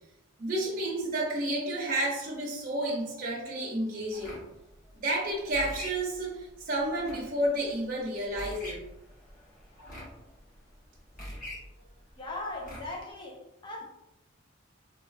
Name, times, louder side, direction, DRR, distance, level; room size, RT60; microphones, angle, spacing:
voice 1, 0.4-4.3 5.0-8.8, right 1 dB, 45° right, -4 dB, 0.7 m, -31 dB
sound 1, 4.1-13.1, equal, 45° left, 1.4 m, -45 dB
voice 2, 12.2-13.8, left 2 dB, 25° left, -1 dB, 0.6 m, -39 dB
3.3 x 3.0 x 2.4 m, 0.91 s
head